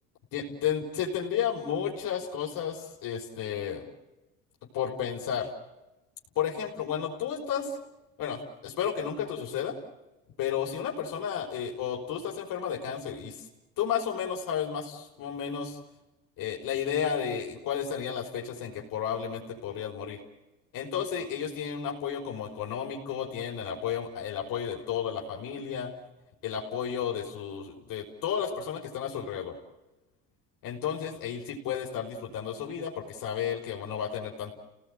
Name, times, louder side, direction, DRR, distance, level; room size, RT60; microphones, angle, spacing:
voice 1, 0.3-3.9 4.7-5.5 6.4-7.8 8.2-9.8 10.4-13.5 13.8-15.8 16.4-20.2 20.7-25.9 26.4-29.6 30.6-34.5, left 8 dB, 55° left, 0 dB, 5.5 m, -32 dB
30.0 x 19.0 x 9.2 m, 1.0 s
supercardioid pair, 100°, 39 cm